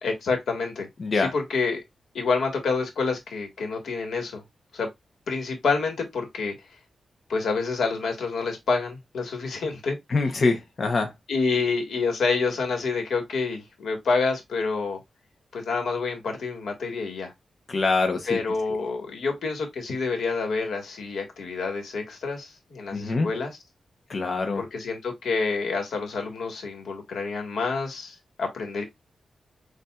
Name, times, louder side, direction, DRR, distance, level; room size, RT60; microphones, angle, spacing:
voice 1, 0.0-0.9 1.1-1.8 2.1-4.4 4.7-4.9 5.3-6.5 7.3-10.0 11.3-15.0 15.5-17.3 18.3-23.6 24.6-28.8, left 4 dB, 85° left, 1.6 m, -28 dB
voice 2, 1.0-1.3 10.1-11.1 17.7-18.4 22.9-23.3 24.1-24.6, left 3 dB, 50° left, 0.8 m, -24 dB
6.8 x 2.6 x 2.4 m
wide cardioid pair, 110°, 0 cm